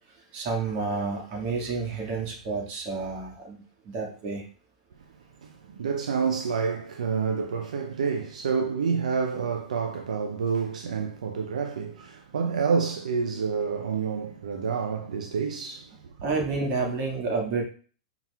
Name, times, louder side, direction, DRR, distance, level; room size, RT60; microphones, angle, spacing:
voice 1, 0.3-4.4 16.2-17.6, right 4 dB, 45° right, 1.8 m, -30 dB
voice 2, 5.4-16.0, right 5 dB, 80° right, 0.5 m, -28 dB
5.5 x 3.9 x 2.3 m
hypercardioid pair, 110°, 4 cm